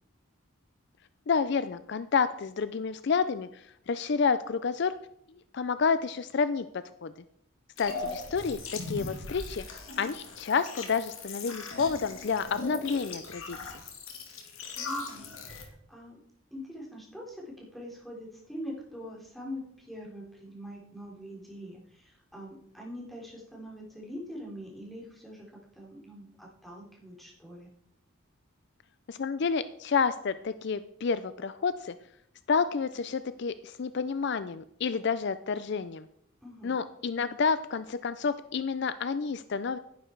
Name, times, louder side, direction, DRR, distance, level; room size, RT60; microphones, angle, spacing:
voice 1, 1.3-4.9 5.5-7.1 7.8-13.7 29.1-31.9 32.5-36.1 36.6-39.8, left 5 dB, 55° left, 13 dB, 0.4 m, -29 dB
sound 1, 7.8-15.6, left 3 dB, 70° left, 2.5 m, -39 dB
voice 2, 14.7-16.2 16.5-17.4 17.7-25.5 25.7-27.7 36.4-36.8, equal, ahead, -4 dB, 3.7 m, -43 dB
11.0 x 11.0 x 4.6 m, 0.73 s
head